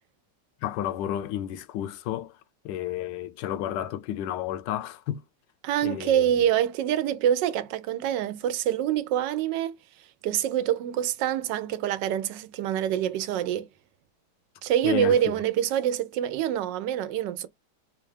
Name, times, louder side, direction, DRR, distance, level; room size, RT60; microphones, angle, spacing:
voice 1, 0.6-2.4 2.6-5.2 5.8-6.5 14.8-15.4, left 11 dB, 85° left, 1.2 m, -32 dB
voice 2, 5.6-9.8 10.2-13.7 14.6-17.5, right 10 dB, 90° right, 1.3 m, -26 dB
4.3 x 2.3 x 3.2 m
omnidirectional pair, 1.9 m